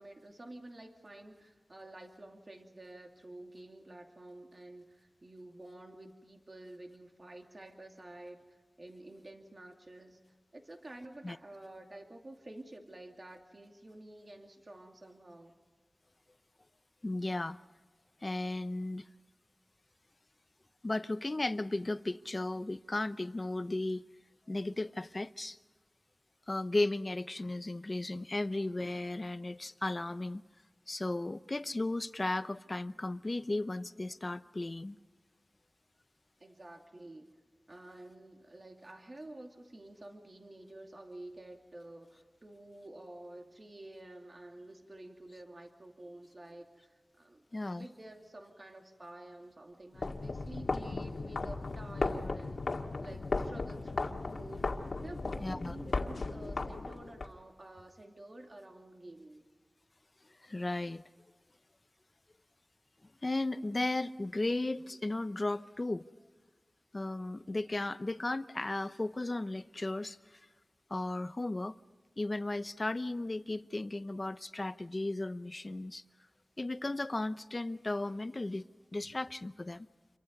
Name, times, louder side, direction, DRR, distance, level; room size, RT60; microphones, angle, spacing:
voice 1, 0.0-10.2 10.5-15.5 36.4-37.3 37.7-47.5 47.7-59.4, right 1 dB, 45° right, 2.6 m, -50 dB
voice 2, 17.0-17.6 18.2-19.0 20.8-24.0 24.5-25.6 26.5-30.4 30.9-35.0 47.5-47.9 55.4-55.8 60.4-61.0 63.2-66.1 66.9-70.4 70.9-71.8 72.2-76.0 76.6-78.7 78.9-79.9, left 2 dB, 35° left, 0.8 m, -35 dB
sound 1, 49.9-57.3, left 3 dB, 75° left, 1.9 m, -36 dB
28.5 x 24.0 x 5.4 m
wide cardioid pair, 85°, 0 cm